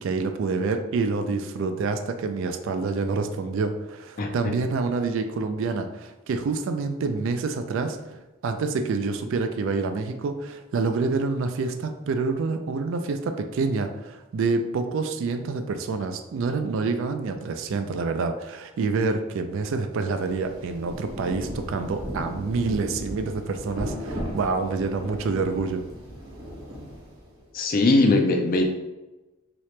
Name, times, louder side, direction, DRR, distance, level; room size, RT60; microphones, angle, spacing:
voice 1, 0.0-25.8, right 4 dB, 60° right, 8 dB, 0.3 m, -27 dB
Rain, 20.2-27.4, equal, 80° right, 1.1 m, -36 dB
voice 2, 27.5-28.6, left 2 dB, 40° left, 3 dB, 0.4 m, -20 dB
3.0 x 2.8 x 3.2 m, 1.1 s
head